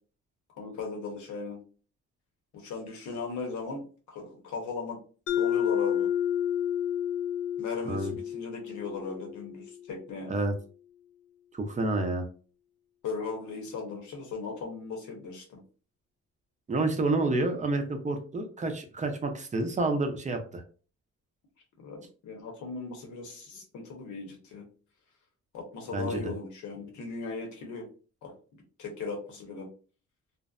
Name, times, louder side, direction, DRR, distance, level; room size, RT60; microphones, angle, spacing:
voice 1, 0.6-1.6 2.5-5.0 5.4-6.1 7.6-10.3 13.0-15.6 21.8-24.6 25.5-27.9 28.2-28.3 28.8-29.7, left 4 dB, 75° left, 1 dB, 1.0 m, -38 dB
Mallet percussion, 5.3-9.8, left 10 dB, 45° left, 0.4 m, -30 dB
voice 2, 11.5-12.3 16.7-20.6 25.9-26.2, right 2 dB, 25° right, 5 dB, 0.6 m, -29 dB
2.5 x 2.0 x 2.4 m, 0.38 s
cardioid pair, 90°, 30 cm